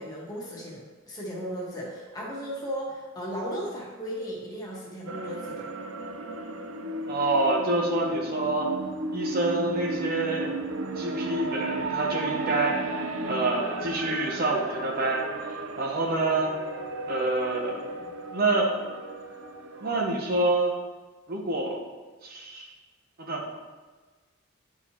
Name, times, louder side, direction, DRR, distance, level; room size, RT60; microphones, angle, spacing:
voice 1, 0.0-5.6, equal, 20° left, -4 dB, 1.4 m, -36 dB
sound 1, 5.1-20.0, right 2 dB, 70° right, 0.5 m, -34 dB
voice 2, 7.1-8.7 9.1-10.5 11.0-12.8 13.3-16.5 17.1-18.1 18.3-18.7 19.8-20.7 21.3-21.8 22.2-22.7 23.2-23.5, right 2 dB, 45° right, 0 dB, 0.9 m, -27 dB
10.0 x 4.8 x 2.9 m, 1.3 s
head